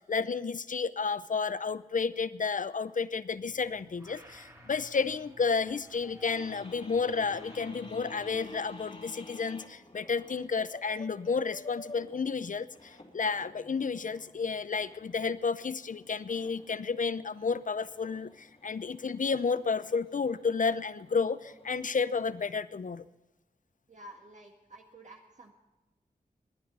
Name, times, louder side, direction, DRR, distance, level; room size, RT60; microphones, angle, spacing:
voice 1, 0.0-23.1, left 5 dB, 60° left, 16 dB, 0.6 m, -31 dB
sound 1, 3.3-8.8, equal, 20° right, 2.6 m, -54 dB
sound 2, 6.3-22.5, left 2 dB, 40° left, 2.3 m, -52 dB
voice 2, 23.9-25.5, right 1 dB, 50° right, 0 dB, 1.8 m, -51 dB
19.5 x 10.5 x 5.5 m, 1.1 s
wide cardioid pair, 60°, 15 cm